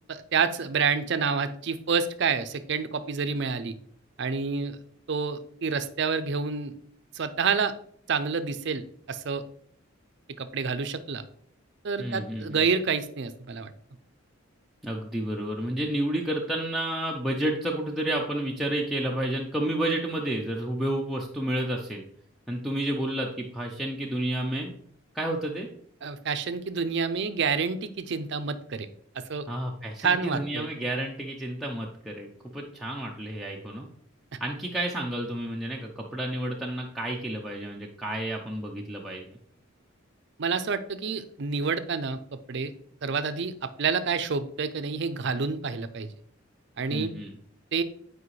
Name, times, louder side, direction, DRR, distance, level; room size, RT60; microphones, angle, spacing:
voice 1, 0.1-3.7 4.2-4.8 5.1-6.7 7.1-7.7 8.1-8.8 9.1-9.4 10.4-11.2 11.8-13.7 26.0-28.9 29.2-29.5 30.0-30.7 40.4-42.7 43.0-46.1 46.8-47.1 47.7-47.8, right 5 dB, 55° right, 11 dB, 0.5 m, -28 dB
voice 2, 12.0-12.6 14.8-22.0 22.5-24.7 25.1-25.7 29.5-33.9 34.4-39.4 46.9-47.3, right 1 dB, ahead, -3 dB, 0.5 m, -30 dB
8.3 x 4.9 x 3.2 m, 0.63 s
head